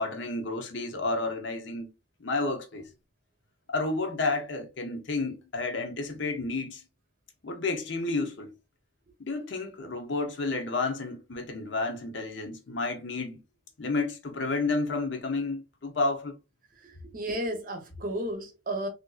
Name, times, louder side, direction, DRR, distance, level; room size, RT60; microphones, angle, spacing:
voice 1, 0.0-1.9 2.2-2.9 3.7-6.8 7.4-8.5 9.2-13.4 13.8-16.3, left 3 dB, 65° left, 0.7 m, -31 dB
voice 2, 16.8-18.9, right 1 dB, 45° right, 0.7 m, -33 dB
3.4 x 2.5 x 2.3 m
head